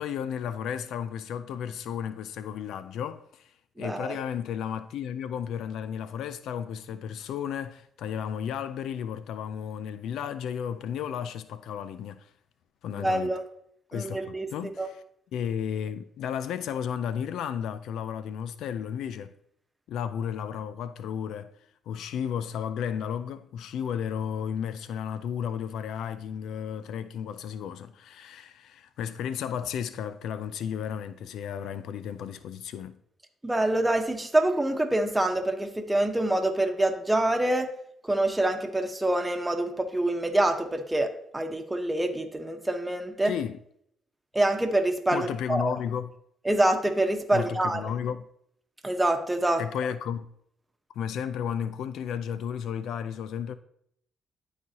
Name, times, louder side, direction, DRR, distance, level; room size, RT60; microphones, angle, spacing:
voice 1, 0.0-3.5 3.8-12.3 12.8-13.4 13.9-15.0 15.3-19.3 19.9-21.5 21.9-33.0 43.2-43.6 45.1-46.1 47.3-48.3 49.6-50.3 51.0-53.6, left 8 dB, 80° left, 0.4 m, -33 dB
voice 2, 3.8-4.2 12.9-13.4 13.9-14.5 14.8-14.9 33.4-37.7 38.0-43.3 44.3-45.8 46.4-47.8 48.8-49.6, right 1 dB, 15° right, 1.1 m, -26 dB
12.0 x 4.1 x 2.9 m
supercardioid pair, 65°, 0 cm